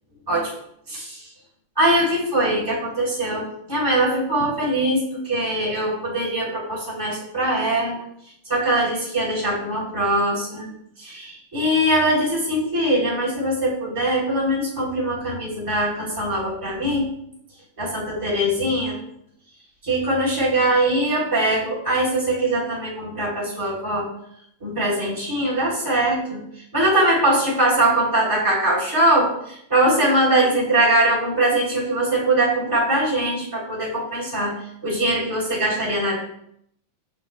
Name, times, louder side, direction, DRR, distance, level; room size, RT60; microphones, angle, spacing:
voice 1, 0.9-1.2 1.8-3.4 3.7-8.0 8.4-10.7 11.0-17.1 17.8-19.0 19.8-24.1 24.6-26.4 26.7-34.5 34.8-36.2, right 1 dB, 5° right, -6 dB, 2.9 m, -22 dB
11.5 x 7.5 x 2.3 m, 0.72 s
omnidirectional pair, 4.1 m